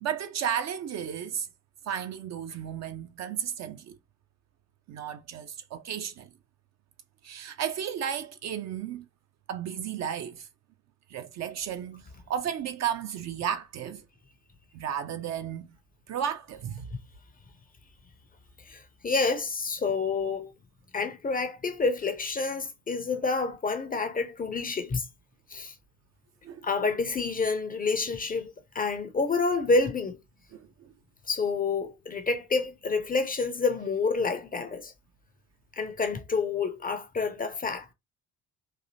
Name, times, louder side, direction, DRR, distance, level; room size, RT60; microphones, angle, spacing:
voice 1, 0.0-1.5 1.9-4.0 4.9-6.3 7.2-9.1 9.5-10.5 11.1-14.0 14.7-15.7 16.1-16.9 26.4-26.6 30.5-30.7, right 9 dB, 40° right, 0.4 m, -33 dB
voice 2, 18.7-20.5 20.9-25.0 25.5-25.7 26.6-30.2 31.3-34.9 35.8-37.9, left 4 dB, 20° left, 0.5 m, -28 dB
3.9 x 2.7 x 2.7 m
figure-of-eight pair, 45°, 46 cm